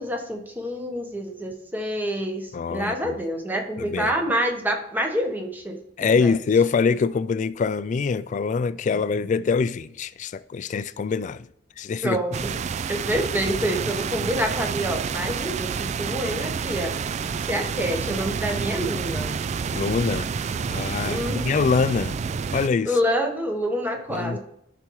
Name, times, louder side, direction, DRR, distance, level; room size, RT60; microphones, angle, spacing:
voice 1, 0.0-5.8 6.2-6.3 12.0-12.3 12.9-17.2 17.4-19.3 21.0-21.5 22.8-24.4, equal, 10° right, 1.0 m, -27 dB
voice 2, 2.5-3.2 3.8-4.1 6.0-11.5 11.8-12.2 19.7-20.3 20.7-22.2 22.5-22.9 24.1-24.4, left 5 dB, 45° left, 0.3 m, -24 dB
sound 1, 12.3-22.7, right 6 dB, 40° right, 0.3 m, -29 dB
13.0 x 5.8 x 3.1 m
head